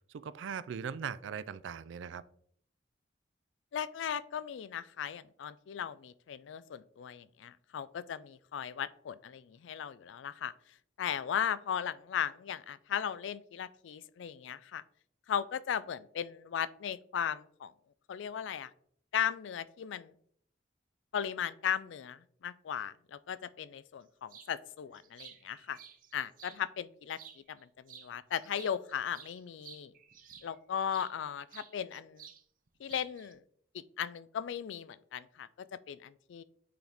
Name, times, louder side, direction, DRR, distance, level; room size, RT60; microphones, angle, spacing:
voice 1, 0.1-2.2, right 7 dB, 85° right, 16 dB, 0.4 m, -40 dB
voice 2, 3.7-10.5 11.0-14.8 15.3-17.7 18.1-18.7 19.1-20.1 21.1-25.8 26.1-27.2 27.5-29.9 30.4-32.3 32.8-33.4 34.0-35.5 35.9-36.4, left 8 dB, 80° left, 17 dB, 0.4 m, -37 dB
sound 1, 24.3-24.5 24.9-26.6 27.1-27.6 27.9-31.1 31.5-32.4 32.7-33.3, right 8 dB, 45° right, 0.6 m, -53 dB
8.6 x 3.9 x 3.4 m, 0.63 s
head